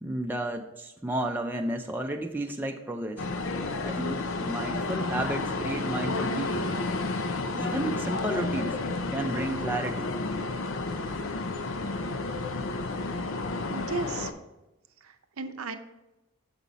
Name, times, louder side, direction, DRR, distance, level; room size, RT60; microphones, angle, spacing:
voice 1, 0.0-3.3 3.9-6.7 7.5-8.8 9.1-10.1, right 1 dB, 10° right, 2 dB, 0.4 m, -32 dB
sound 1, 3.2-14.3, left 3 dB, 70° left, 0.6 m, -31 dB
voice 2, 13.7-14.3 15.0-15.8, right 3 dB, 85° right, 9 dB, 0.6 m, -35 dB
7.3 x 5.3 x 4.1 m, 0.99 s
head